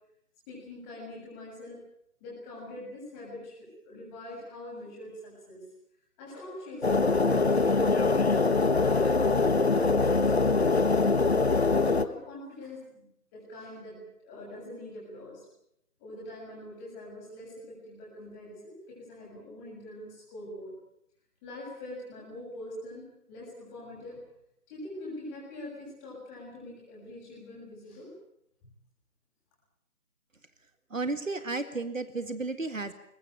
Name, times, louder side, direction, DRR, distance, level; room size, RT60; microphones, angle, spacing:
voice 1, 0.5-1.8 2.2-5.6 6.2-11.0 11.5-15.5 16.0-20.7 21.4-24.2 24.7-28.1 28.6-28.7, left 1 dB, 10° left, -5 dB, 7.0 m, -44 dB
sound 1, 6.8-12.0, left 3 dB, 45° left, 1.2 m, -23 dB
voice 2, 30.9-32.9, right 3 dB, 60° right, 10 dB, 2.0 m, -33 dB
22.5 x 20.0 x 9.0 m, 0.77 s
figure-of-eight pair, 160°, 45 cm